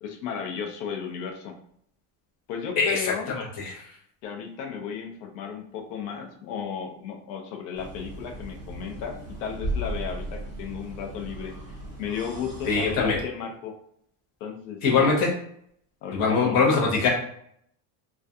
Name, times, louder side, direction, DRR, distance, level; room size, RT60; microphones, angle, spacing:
voice 1, 0.0-1.5 2.5-3.3 4.2-11.5 12.0-13.8 14.4-15.1 16.0-16.6, left 7 dB, 85° left, 3 dB, 0.6 m, -34 dB
voice 2, 2.8-3.8 12.7-13.2 14.8-15.3 16.1-17.1, left 4 dB, 35° left, -2 dB, 0.6 m, -23 dB
sound 1, 7.7-13.2, right 1 dB, 10° right, 0.4 m, -36 dB
2.3 x 2.3 x 2.6 m, 0.68 s
cardioid pair, 175°, 45 cm